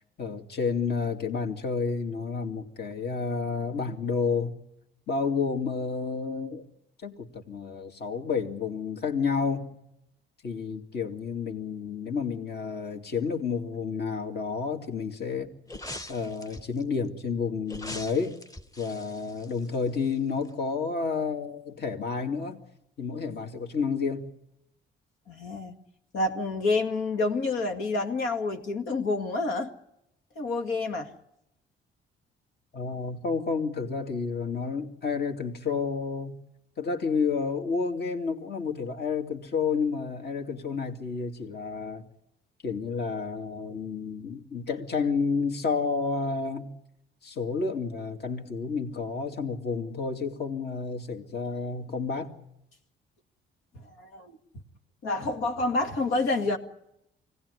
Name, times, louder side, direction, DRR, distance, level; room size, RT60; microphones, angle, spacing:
voice 1, 0.2-4.6 5.1-6.7 7.0-9.8 10.4-15.5 16.1-18.4 18.8-22.6 23.0-24.3 32.7-36.4 36.8-42.1 42.6-46.7 47.2-52.3, left 5 dB, 55° left, 4 dB, 2.5 m, -30 dB
sound 1, 15.7-16.8 17.7-20.1 20.4-20.5, left 1 dB, 15° left, 1.3 m, -42 dB
voice 2, 25.3-25.7 26.1-29.7 30.4-31.1 54.0-54.3 55.0-56.6, left 3 dB, 90° left, 3 dB, 2.2 m, -28 dB
25.0 x 18.0 x 9.8 m, 0.84 s
cardioid pair, 90°, 20 cm